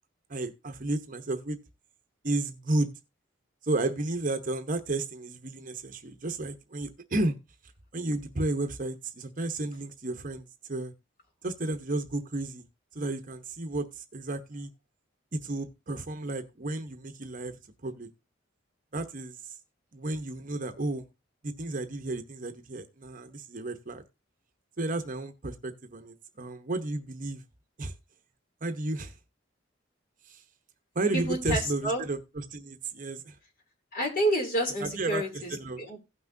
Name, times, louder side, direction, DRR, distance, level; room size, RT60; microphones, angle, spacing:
voice 1, 0.3-1.6 2.2-2.9 3.6-7.4 7.9-10.9 11.4-12.6 12.9-14.7 15.3-17.5 17.8-18.1 18.9-19.5 19.9-21.0 21.4-24.0 24.8-27.4 27.8-27.9 28.6-29.1 30.3-30.4 30.9-33.4 34.8-35.2 35.5-35.8, right 2 dB, 45° right, 0.9 m, -32 dB
voice 2, 31.1-32.0 33.9-35.5 35.8-36.0, right 1 dB, 50° left, 2.8 m, -28 dB
16.5 x 5.9 x 2.6 m
head